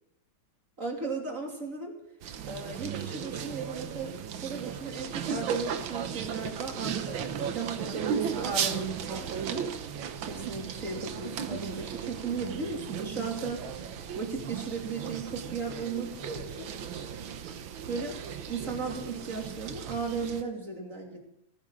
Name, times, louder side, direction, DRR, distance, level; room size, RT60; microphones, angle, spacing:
voice 1, 0.8-2.0 2.5-4.1 4.4-9.6 10.3-16.7 17.9-18.2 18.5-21.2, right 4 dB, 40° right, 1 dB, 3.3 m, -36 dB
sound 1, 2.2-20.4, right 7 dB, 80° right, 1.8 m, -36 dB
19.5 x 11.5 x 3.9 m, 0.79 s
omnidirectional pair, 2.2 m